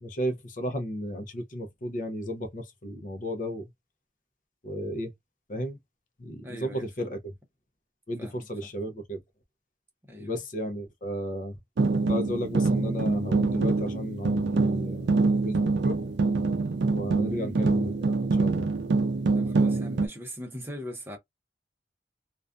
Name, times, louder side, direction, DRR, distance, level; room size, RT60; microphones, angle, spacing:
voice 1, 0.0-3.6 4.6-5.1 5.5-5.8 6.2-7.2 8.1-9.2 10.2-11.6 12.1-15.1 15.4-16.0 16.9-17.9 18.4-18.7, equal, 45° left, 0.5 m, -33 dB
voice 2, 6.4-7.1 8.2-8.7 10.1-10.4 17.3-17.6 19.3-21.2, left 1 dB, 10° right, 0.6 m, -40 dB
sound 1, 11.8-20.1, right 3 dB, 90° right, 0.4 m, -25 dB
2.4 x 2.2 x 2.4 m
head